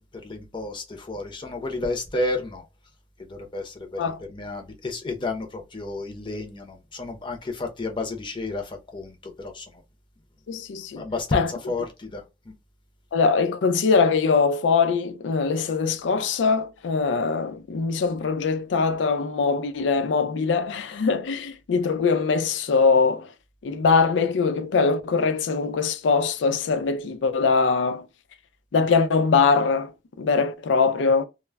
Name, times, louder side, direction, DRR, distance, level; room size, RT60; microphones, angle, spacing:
voice 1, 0.2-2.6 3.2-9.7 11.0-12.5, left 2 dB, 30° left, 0.6 m, -31 dB
voice 2, 10.5-11.0 11.3-11.5 13.1-23.3 23.6-28.0 28.7-29.9 30.2-31.3, left 4 dB, 80° left, 0.4 m, -22 dB
2.1 x 2.0 x 3.3 m
head